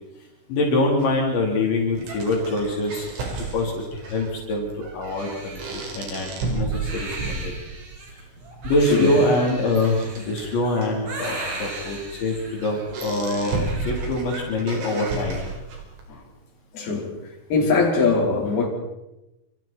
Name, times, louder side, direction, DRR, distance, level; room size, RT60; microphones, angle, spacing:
voice 1, 0.5-3.1 3.4-7.5 8.6-15.4 17.6-17.7, left 2 dB, 70° left, -2 dB, 6.3 m, -24 dB
sound 1, 1.0-16.0, right 3 dB, 85° right, 7.6 m, -34 dB
Crying sobbing, 5.2-14.4, right 2 dB, 50° right, 7.6 m, -37 dB
voice 2, 16.7-17.2 17.5-18.7, left 4 dB, 55° left, -2 dB, 6.6 m, -21 dB
29.0 x 28.0 x 4.6 m, 0.97 s
omnidirectional pair, 5.4 m